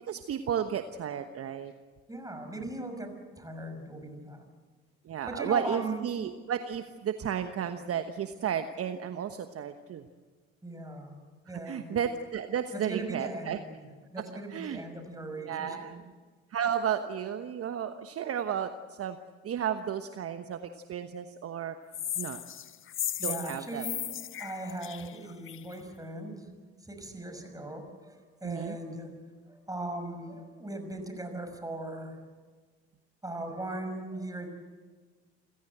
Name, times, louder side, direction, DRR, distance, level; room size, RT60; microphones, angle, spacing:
voice 1, 0.0-1.7 5.0-10.1 11.6-13.6 14.5-14.8 15.4-16.1 16.5-19.2 19.4-21.8 22.2-22.4 23.2-23.9 28.4-28.8, right 8 dB, 45° right, 9 dB, 1.2 m, -33 dB
voice 2, 2.1-4.4 5.3-6.0 10.6-12.0 12.7-13.7 14.1-15.9 23.2-24.0 24.4-26.5 26.8-29.1 29.5-32.2 33.2-34.5, right 2 dB, 10° right, 6 dB, 6.0 m, -39 dB
sound 1, 21.9-25.7, left 10 dB, 40° left, 0.9 m, -36 dB
28.5 x 16.5 x 7.9 m, 1.4 s
hypercardioid pair, 60°, 33 cm